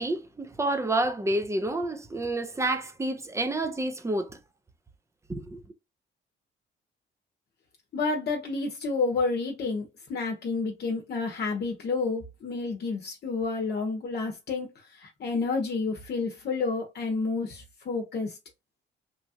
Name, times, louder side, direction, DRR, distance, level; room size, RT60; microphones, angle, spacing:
voice 1, 0.0-4.4 5.3-5.6, right 2 dB, 15° right, 0.6 m, -29 dB
voice 2, 7.9-14.7 14.9-18.3, left 4 dB, 55° left, 0.9 m, -30 dB
3.1 x 2.2 x 2.8 m
cardioid pair, 90°, 20 cm